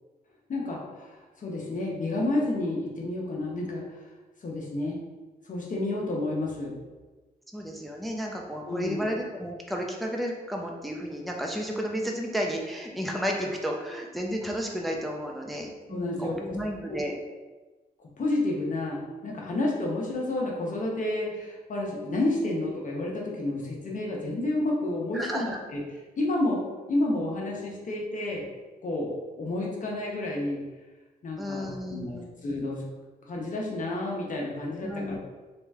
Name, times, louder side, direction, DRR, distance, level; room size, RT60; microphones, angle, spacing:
voice 1, 0.5-1.1 1.4-3.8 4.4-5.0 5.5-6.7 8.7-9.0 15.9-16.6 16.9-17.0 18.0-25.8 26.2-26.6 26.9-28.4 28.8-30.6 31.2-32.9 33.3-35.2, left 2 dB, 55° left, -2 dB, 0.9 m, -30 dB
voice 2, 7.5-17.1 25.1-25.6 31.4-32.3 34.8-35.2, equal, ahead, 0 dB, 0.5 m, -32 dB
3.1 x 3.1 x 3.5 m, 1.2 s
cardioid pair, 80°, 16 cm